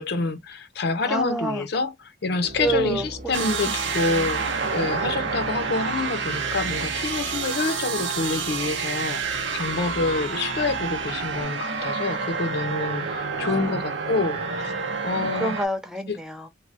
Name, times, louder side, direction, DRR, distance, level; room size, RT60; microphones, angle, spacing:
voice 1, 0.0-4.5 4.7-14.7 15.0-15.5 16.1-16.2, left 3 dB, 65° left, 0.6 m, -27 dB
voice 2, 1.0-1.6 2.6-3.6 4.1-4.3 4.8-4.9 13.3-13.7 15.4-16.5, right 2 dB, 5° right, 0.4 m, -28 dB
sound 1, 2.4-11.4, right 2 dB, 55° right, 0.7 m, -39 dB
sound 2, 3.3-15.7, right 5 dB, 90° right, 0.7 m, -29 dB
3.3 x 2.2 x 2.5 m
head